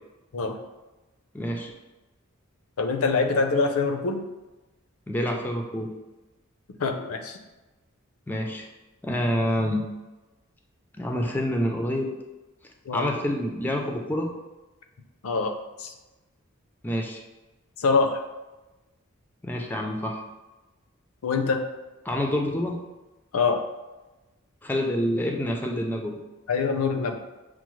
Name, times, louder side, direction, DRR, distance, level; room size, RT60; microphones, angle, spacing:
voice 1, 1.3-1.7 5.1-5.9 8.3-8.7 9.0-9.8 11.0-12.1 12.9-14.3 16.8-17.2 19.4-20.2 22.0-22.8 24.6-26.2, equal, 10° left, 2 dB, 0.3 m, -27 dB
voice 2, 2.8-4.2 6.8-7.4 12.9-13.1 15.2-15.5 15.8-15.9 17.8-18.2 21.2-21.6 23.3-23.6 26.5-27.2, left 4 dB, 85° left, 5 dB, 0.5 m, -24 dB
6.1 x 2.0 x 3.0 m, 1.1 s
head